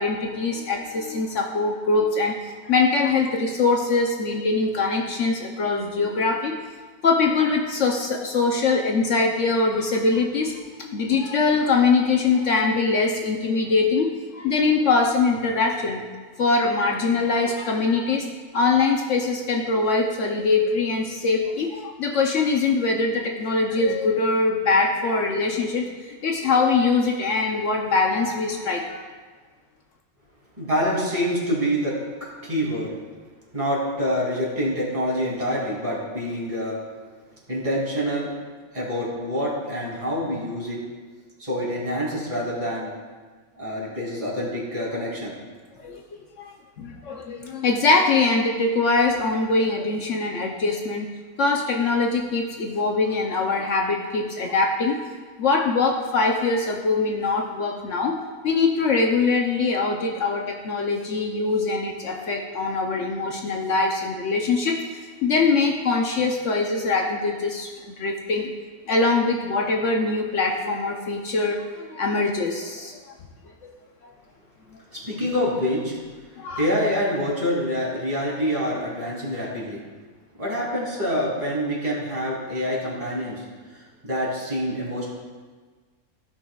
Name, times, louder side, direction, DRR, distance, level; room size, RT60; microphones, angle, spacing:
voice 1, 0.0-6.5 7.0-14.1 14.3-16.0 16.4-18.3 18.5-25.9 26.2-29.0 45.8-46.0 46.4-51.1 51.4-55.0 55.4-58.1 58.4-68.5 68.9-73.0 76.4-76.6, left 3 dB, 60° left, 1 dB, 1.0 m, -23 dB
voice 2, 30.6-33.0 33.5-36.8 37.5-38.3 38.7-40.8 41.4-42.9 43.5-45.3 74.9-75.9 76.6-79.8 80.4-83.4 83.7-85.1, equal, 20° right, -5 dB, 2.6 m, -26 dB
16.5 x 5.8 x 2.3 m, 1.4 s
omnidirectional pair, 1.6 m